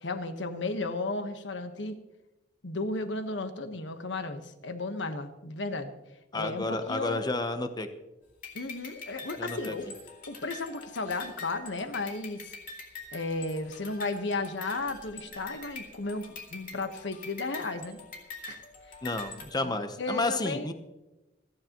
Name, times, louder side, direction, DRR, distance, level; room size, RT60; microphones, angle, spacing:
voice 1, 0.0-2.0 2.6-5.9 6.3-7.2 8.5-9.9 10.3-12.5 13.1-18.0 18.5-18.6 19.6-19.7 20.0-20.7, left 3 dB, 90° left, 8 dB, 1.2 m, -34 dB
voice 2, 6.3-7.9 9.4-9.7 19.0-20.7, left 2 dB, 25° left, 8 dB, 0.8 m, -31 dB
sound 1, 8.4-19.5, left 3 dB, 50° left, 2.5 m, -45 dB
27.0 x 9.6 x 3.0 m, 1.0 s
head